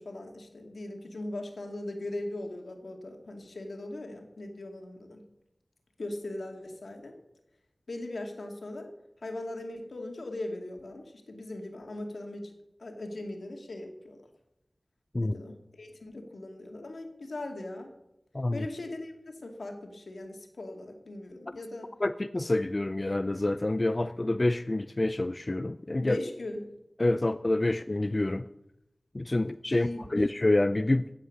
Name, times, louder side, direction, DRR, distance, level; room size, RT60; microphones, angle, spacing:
voice 1, 0.0-5.2 6.0-7.2 7.9-8.9 9.2-12.5 12.8-14.2 15.2-17.9 18.5-21.9 26.0-26.7 29.7-30.2, left 2 dB, 80° left, 3 dB, 2.3 m, -39 dB
voice 2, 22.0-26.2 27.0-28.4 29.1-31.1, left 2 dB, 35° left, 11 dB, 0.4 m, -27 dB
15.5 x 8.5 x 6.6 m, 0.87 s
wide cardioid pair, 70°, 0 cm